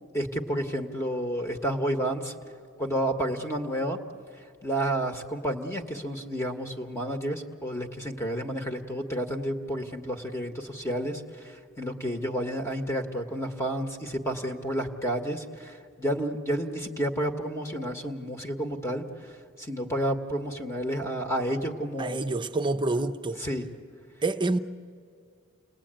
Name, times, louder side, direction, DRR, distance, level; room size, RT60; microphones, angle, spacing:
voice 1, 0.1-2.3 2.8-4.0 4.6-22.2 23.4-23.6, right 1 dB, 15° left, 1.3 m, -30 dB
voice 2, 22.0-23.4 24.2-24.6, right 2 dB, 25° right, 0.7 m, -27 dB
29.5 x 19.5 x 8.9 m
head